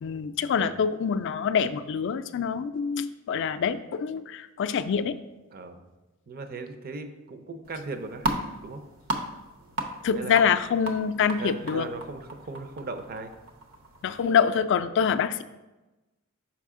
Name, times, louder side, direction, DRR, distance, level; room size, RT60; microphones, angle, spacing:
voice 1, 0.0-5.2 10.0-11.9 14.0-15.4, left 7 dB, 60° left, 11 dB, 0.3 m, -25 dB
voice 2, 5.5-5.8 6.3-8.3 8.6-8.8 10.2-10.4 11.4-13.3, right 3 dB, 45° right, 8 dB, 0.5 m, -37 dB
sound 1, 7.6-14.4, right 1 dB, 70° right, 0.8 m, -36 dB
5.9 x 4.9 x 3.6 m, 1.1 s
head